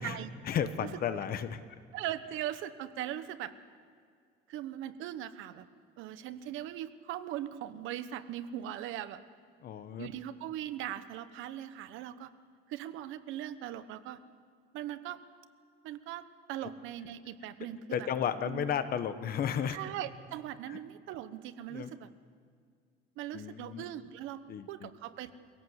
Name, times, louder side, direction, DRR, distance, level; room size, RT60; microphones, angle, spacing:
voice 1, 0.4-1.6 9.6-10.1 17.9-19.8 20.7-20.8 21.7-21.9 23.3-23.8 24.5-24.9, left 8 dB, 50° left, 11 dB, 1.2 m, -33 dB
voice 2, 1.9-3.5 4.5-5.7 6.0-9.2 10.0-12.3 12.7-14.2 14.7-15.2 15.8-18.1 18.5-18.7 19.7-22.1 23.2-25.3, right 12 dB, 85° right, 12 dB, 1.1 m, -40 dB
23.5 x 17.5 x 8.1 m, 2.1 s
cardioid pair, 145°, 20 cm